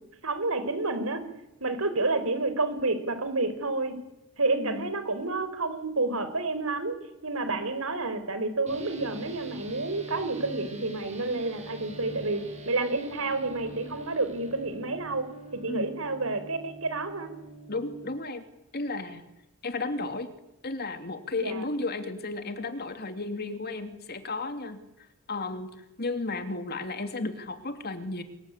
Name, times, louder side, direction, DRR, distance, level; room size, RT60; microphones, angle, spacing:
voice 1, 0.2-1.2 1.6-4.0 4.4-7.0 7.2-15.3 15.5-17.3 21.3-21.6, right 3 dB, 85° right, 11 dB, 4.5 m, -29 dB
voice 2, 4.5-4.9 15.7-15.9 17.7-18.4 18.7-19.2 19.6-20.3 20.6-24.8 25.3-28.2, left 3 dB, 50° left, 8 dB, 2.9 m, -33 dB
sound 1, 8.6-18.1, right 2 dB, 35° right, 7.5 m, -45 dB
26.0 x 22.5 x 9.9 m, 0.90 s
head